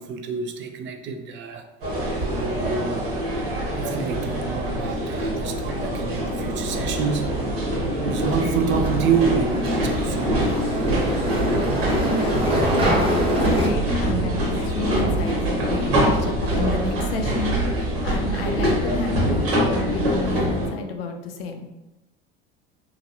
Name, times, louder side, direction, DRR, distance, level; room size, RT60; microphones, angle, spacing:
voice 1, 0.0-1.7 2.2-3.1 3.7-7.3 8.0-10.5 11.2-11.4, right 6 dB, 40° right, 6 dB, 0.4 m, -28 dB
sound 1, 1.8-20.7, equal, 75° right, 1.3 m, -24 dB
sound 2, 8.2-13.7, equal, 15° right, 1.0 m, -26 dB
voice 2, 12.0-21.7, left 3 dB, 75° left, 5 dB, 0.5 m, -31 dB
2.9 x 2.3 x 2.8 m, 0.96 s
hypercardioid pair, 75°, 30 cm